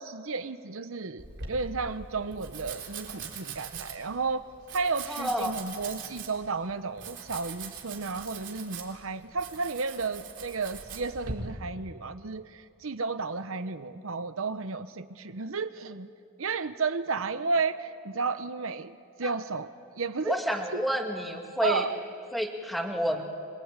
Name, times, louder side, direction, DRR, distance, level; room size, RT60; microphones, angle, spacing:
voice 1, 0.0-4.4 4.7-16.1 16.4-19.7 20.0-20.4 21.6-22.0, right 4 dB, 70° right, 11 dB, 0.9 m, -32 dB
Domestic sounds home sounds, 1.2-11.3, right 5 dB, 55° right, 4.0 m, -42 dB
voice 2, 5.1-5.6 19.2-19.3 20.2-21.8 22.3-23.2, equal, ahead, 2 dB, 2.1 m, -29 dB
25.5 x 23.5 x 9.0 m, 2.3 s
head